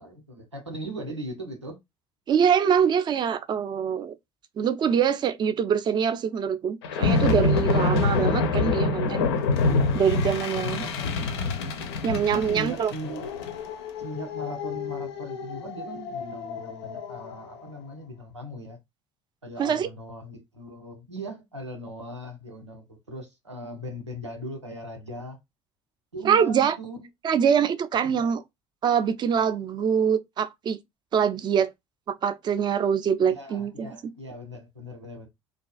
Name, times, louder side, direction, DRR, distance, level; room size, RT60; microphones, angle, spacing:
voice 1, 0.0-1.8 10.6-11.3 12.3-13.3 14.0-18.8 19.4-25.4 26.1-27.1 28.0-28.3 33.2-35.3, equal, 90° right, 0.6 m, -39 dB
voice 2, 2.3-4.1 4.6-9.3 9.9-10.8 12.0-12.9 19.6-19.9 26.2-26.8 27.2-28.4 28.8-30.8 31.1-31.7 32.1-33.9, right 7 dB, 30° right, 0.4 m, -24 dB
sound 1, 6.8-17.4, left 3 dB, 70° left, 0.4 m, -27 dB
2.5 x 2.2 x 2.3 m
figure-of-eight pair, 60°, 14 cm